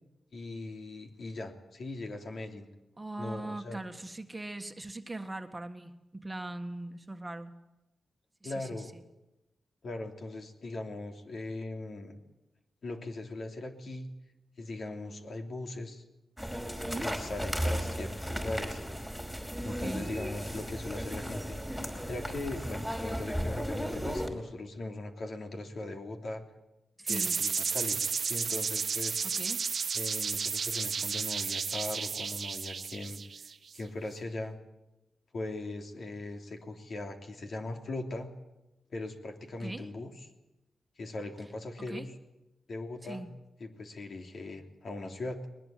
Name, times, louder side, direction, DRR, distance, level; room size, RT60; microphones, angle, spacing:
voice 1, 0.3-2.7 3.2-3.8 8.4-8.9 9.8-12.2 12.8-14.1 14.6-16.0 16.9-18.8 19.6-26.4 27.1-29.2 29.9-33.2 33.7-34.6 35.3-38.3 38.9-40.1 41.0-42.1 42.7-43.2 43.6-45.4, left 2 dB, 60° left, 4 dB, 3.2 m, -39 dB
voice 2, 3.0-7.5 8.4-8.8 16.9-17.1 19.7-20.1 27.0-27.3 29.2-29.6 39.6-39.9 41.8-42.1 43.0-43.3, right 2 dB, 20° right, 6 dB, 1.7 m, -40 dB
sound 1, 16.4-24.3, equal, 5° left, 4.9 m, -35 dB
sound 2, 27.1-33.8, right 6 dB, 60° right, 1.1 m, -32 dB
21.0 x 20.0 x 9.0 m, 0.95 s
wide cardioid pair, 95°, 0 cm